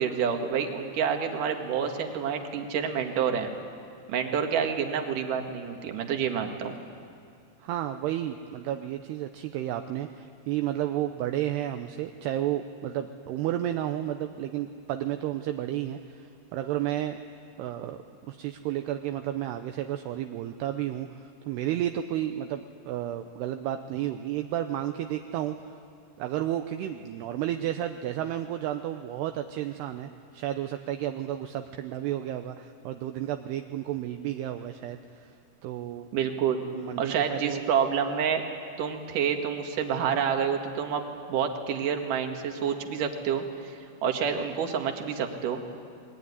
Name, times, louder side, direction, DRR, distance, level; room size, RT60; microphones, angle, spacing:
voice 1, 0.0-3.5 4.1-6.8 36.1-36.6 37.0-38.4 38.8-41.0 41.3-45.6, right 7 dB, 55° right, 4 dB, 2.9 m, -28 dB
voice 2, 7.6-17.2 17.6-18.0 18.3-25.8 26.2-35.3 35.6-36.1 36.7-37.7, right 12 dB, 80° right, 7 dB, 2.6 m, -32 dB
28.0 x 21.5 x 9.8 m, 2.3 s
omnidirectional pair, 5.3 m